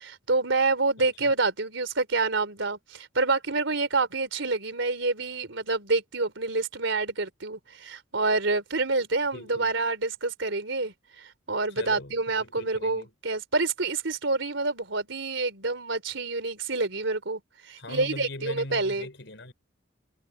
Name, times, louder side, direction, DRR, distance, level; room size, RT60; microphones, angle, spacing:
voice 1, 0.0-19.1, right 3 dB, 75° right, 3.6 m, -28 dB
voice 2, 1.0-1.3 9.3-9.7 11.8-13.1 17.8-19.5, left 1 dB, 65° left, 5.6 m, -40 dB
head